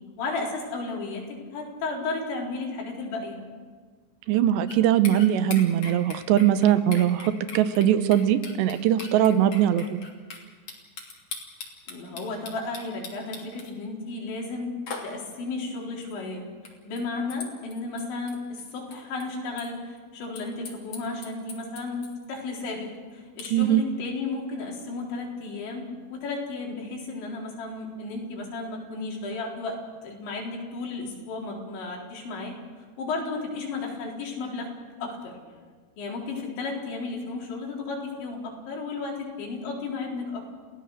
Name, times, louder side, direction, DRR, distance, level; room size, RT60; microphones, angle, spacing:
voice 1, 0.2-3.4 11.9-14.7 15.0-29.8 30.0-32.6 33.0-34.7 35.0-35.4 36.0-40.6, left 3 dB, 90° left, -2 dB, 6.4 m, -33 dB
voice 2, 4.3-10.0 23.5-23.8, right 11 dB, 80° right, 12 dB, 3.0 m, -21 dB
sound 1, 4.7-4.8 5.1-10.4 10.7-13.7 14.9-15.1 16.0-16.1 16.7-16.8 17.0-17.1 17.3-18.6 18.9-19.7 20.0-20.1 20.4-22.3 22.5-22.6 23.4-23.5, left 4 dB, 45° left, 3.8 m, -39 dB
30.0 x 17.0 x 6.7 m, 1.5 s
omnidirectional pair, 5.1 m